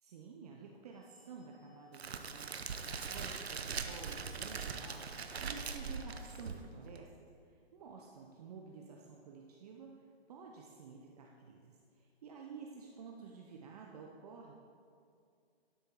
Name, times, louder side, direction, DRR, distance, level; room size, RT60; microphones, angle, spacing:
voice 1, 0.0-14.5, right 5 dB, 40° right, 1 dB, 0.8 m, -52 dB
sound 1, 0.9-6.2, equal, ahead, 0.4 m, -63 dB
Crackle, 1.9-7.0, right 5 dB, 75° right, 0.8 m, -41 dB
11.5 x 6.4 x 4.6 m, 2.3 s
figure-of-eight pair, 135°, 32 cm